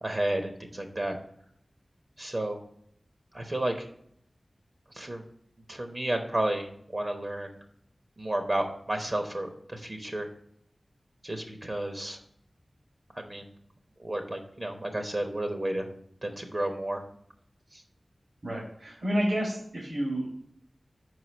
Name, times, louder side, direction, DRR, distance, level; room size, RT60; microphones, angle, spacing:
voice 1, 0.0-1.2 2.2-2.6 3.3-3.9 4.9-5.2 5.7-7.6 8.2-10.3 11.2-12.2 13.1-13.5 14.0-15.9 16.2-17.0 17.7-17.8, right 1 dB, 45° right, 4 dB, 1.0 m, -32 dB
voice 2, 18.4-20.2, equal, 65° right, -3 dB, 1.9 m, -30 dB
5.0 x 4.8 x 6.0 m, 0.69 s
wide cardioid pair, 55°, 0 cm